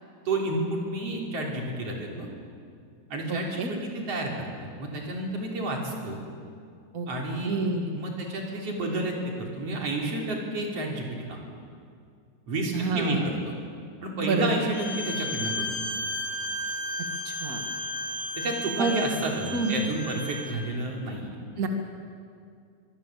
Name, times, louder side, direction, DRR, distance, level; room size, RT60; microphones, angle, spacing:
voice 1, 0.3-2.3 3.1-6.2 7.1-7.6 7.9-11.4 12.5-13.5 14.0-15.8 18.4-21.3, right 2 dB, 35° right, -1 dB, 4.1 m, -31 dB
voice 2, 3.3-3.7 6.9-7.1 7.4-7.9 12.7-13.2 14.2-14.6 17.2-17.6 18.8-19.0 19.5-19.8 21.6-21.7, right 3 dB, 70° right, 3 dB, 0.8 m, -28 dB
Bowed string instrument, 14.7-20.5, left 1 dB, 40° left, 5.1 m, -33 dB
24.0 x 21.0 x 7.6 m, 2.3 s
omnidirectional pair, 5.0 m